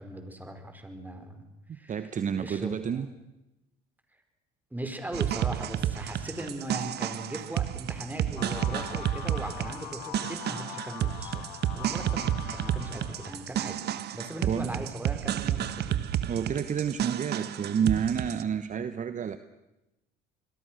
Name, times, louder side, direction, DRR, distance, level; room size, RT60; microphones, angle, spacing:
voice 1, 0.0-1.4 1.7-2.0 2.4-3.1 4.7-11.4 11.7-13.8 14.1-16.0, right 1 dB, 10° right, 6 dB, 5.2 m, -39 dB
voice 2, 1.7-3.1 14.5-14.8 16.3-19.4, right 7 dB, 40° right, 11 dB, 1.2 m, -30 dB
sound 1, 5.1-18.4, right 11 dB, 55° right, 1.4 m, -31 dB
sound 2, 8.4-13.5, left 18 dB, 90° left, 0.8 m, -42 dB
27.0 x 21.5 x 6.5 m, 0.96 s
supercardioid pair, 75°, 20 cm